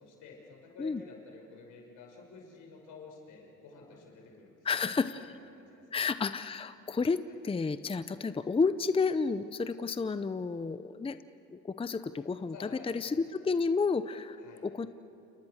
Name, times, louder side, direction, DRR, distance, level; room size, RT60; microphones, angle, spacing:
voice 1, 0.0-4.8 5.2-5.3 5.5-6.0 7.3-7.4 12.5-13.2 14.4-14.7, left 4 dB, 85° left, 0 dB, 6.1 m, -51 dB
voice 2, 4.6-5.3 5.9-7.2 7.4-11.2 11.5-14.9, left 4 dB, 20° left, 12 dB, 0.6 m, -31 dB
29.0 x 29.0 x 6.6 m, 3.0 s
cardioid pair, 100°, 31 cm